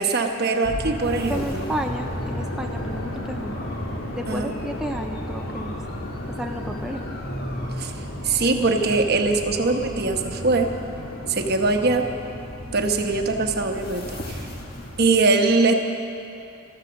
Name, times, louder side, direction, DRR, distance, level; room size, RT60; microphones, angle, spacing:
voice 1, 0.0-1.6 4.3-4.5 7.8-7.9 8.2-10.7 11.3-12.0 12.7-14.4 15.0-15.7, right 3 dB, 50° right, 4 dB, 1.1 m, -22 dB
sound 1, 0.6-15.1, equal, 50° left, 1.9 m, -34 dB
sound 2, 1.1-12.5, left 1 dB, 80° left, 1.8 m, -38 dB
voice 2, 1.3-3.5 4.2-5.8 6.3-7.0, equal, 5° right, 2 dB, 0.4 m, -32 dB
15.0 x 13.5 x 6.4 m, 2.7 s
head